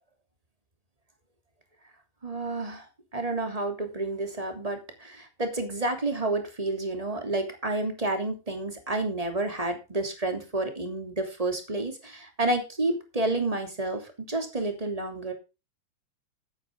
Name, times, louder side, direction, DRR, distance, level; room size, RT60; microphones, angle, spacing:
voice 1, 2.2-2.9 3.1-15.3, right 2 dB, 10° right, 5 dB, 2.7 m, -30 dB
13.5 x 9.6 x 3.7 m, 0.29 s
omnidirectional pair, 3.4 m